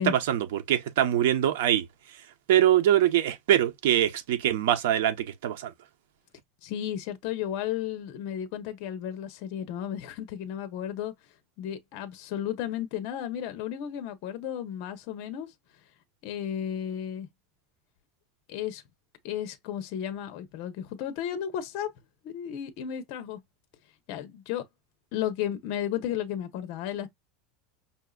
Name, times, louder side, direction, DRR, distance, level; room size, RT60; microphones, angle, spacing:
voice 1, 0.1-1.9 2.5-5.7, right 11 dB, 75° right, 1.0 m, -23 dB
voice 2, 6.6-11.1 11.6-15.5 16.2-17.3 18.5-18.8 19.2-21.9 22.2-23.4 24.1-24.6 25.1-27.1, left 10 dB, 50° left, 0.9 m, -33 dB
5.6 x 2.8 x 2.4 m
supercardioid pair, 170°, 0 cm